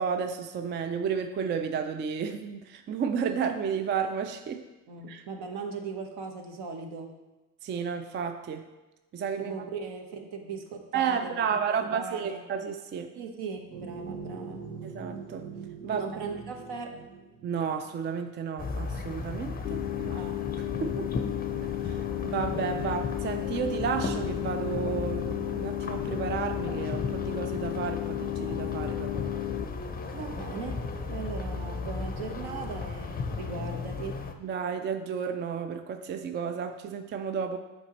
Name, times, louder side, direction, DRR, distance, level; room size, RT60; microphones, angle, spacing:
voice 1, 0.0-4.7 5.1-5.2 7.6-8.7 9.1-9.6 10.9-13.1 14.8-15.5 15.8-16.1 17.4-20.2 20.8-21.1 21.8-29.2 34.4-37.6, right 6 dB, 25° right, 8 dB, 0.3 m, -32 dB
voice 2, 4.9-7.1 9.4-12.4 13.1-14.7 15.9-16.9 20.1-20.4 30.1-30.8 31.1-34.1, right 4 dB, 60° right, 4 dB, 1.1 m, -38 dB
sound 1, 13.7-18.3, right 5 dB, 85° right, 1.4 m, -43 dB
sound 2, 18.6-34.3, left 4 dB, 20° left, 0.6 m, -35 dB
sound 3, 19.6-29.6, left 16 dB, 80° left, 0.5 m, -34 dB
7.9 x 4.3 x 2.9 m, 1.1 s
hypercardioid pair, 70°, 45 cm